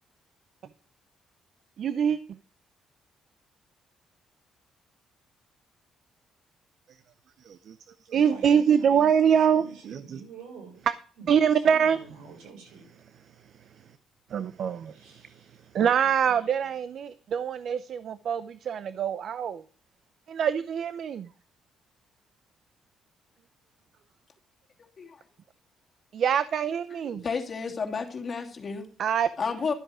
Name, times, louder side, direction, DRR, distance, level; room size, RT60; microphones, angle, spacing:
voice 1, 1.8-2.2 7.5-7.7 8.1-10.2 10.9-11.0 11.3-12.0 14.3-14.9 15.7-19.6 20.3-21.3 26.1-27.2 29.0-29.3, right 8 dB, 65° right, 0.6 m, -24 dB
voice 2, 8.1-10.8 11.2-12.9 14.9-15.5, right 5 dB, 90° right, 5.6 m, -46 dB
voice 3, 27.1-28.9 29.4-29.7, left 5 dB, 40° left, 2.7 m, -31 dB
12.5 x 7.8 x 4.9 m
cardioid pair, 90°, 0 cm